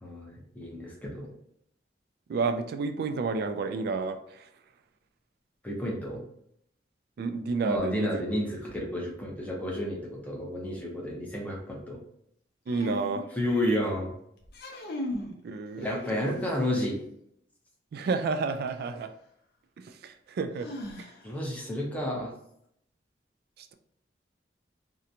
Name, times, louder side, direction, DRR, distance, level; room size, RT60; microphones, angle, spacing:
voice 1, 0.0-1.3 5.6-6.2 7.6-12.0 13.4-14.1 15.8-17.0 21.2-22.3, equal, 10° left, -2 dB, 0.7 m, -31 dB
voice 2, 2.3-4.5 7.2-8.2 12.7-13.3 15.4-15.9 16.2-16.3 17.9-19.1 19.8-20.7 21.0-21.1 23.6-23.7, right 4 dB, 60° right, 7 dB, 0.3 m, -31 dB
sound 1, 12.7-13.9 14.4-15.3 15.8-16.7 18.7-18.8 20.6-21.4, left 1 dB, 60° left, 0.5 m, -38 dB
2.8 x 2.2 x 2.5 m, 0.72 s
head